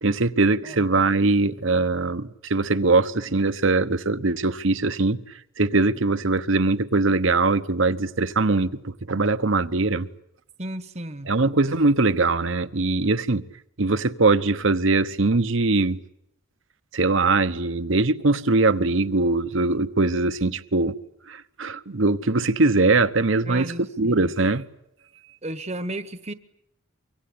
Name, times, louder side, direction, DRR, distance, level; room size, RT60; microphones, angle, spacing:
voice 1, 0.0-5.2 5.6-10.1 11.3-13.4 13.8-16.0 16.9-21.0 21.3-24.6, right 3 dB, 65° right, 1.0 m, -21 dB
voice 2, 0.6-1.0 10.6-11.3 23.4-24.3 25.4-26.3, right 1 dB, 30° right, 1.1 m, -34 dB
25.0 x 24.0 x 8.7 m
head